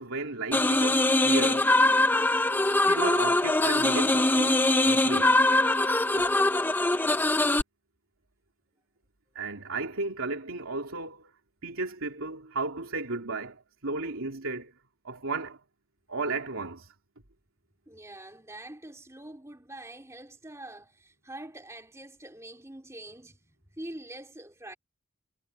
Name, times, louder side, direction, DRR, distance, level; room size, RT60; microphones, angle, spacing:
voice 1, 0.0-1.7 2.8-5.4 9.3-11.3 11.6-14.7 15.0-15.6 16.1-16.9, right 3 dB, 80° right, 2.9 m, -34 dB
sound 1, 0.5-7.6, left 2 dB, 10° left, 0.5 m, -23 dB
voice 2, 17.9-24.7, right 1 dB, 15° right, 2.6 m, -45 dB
head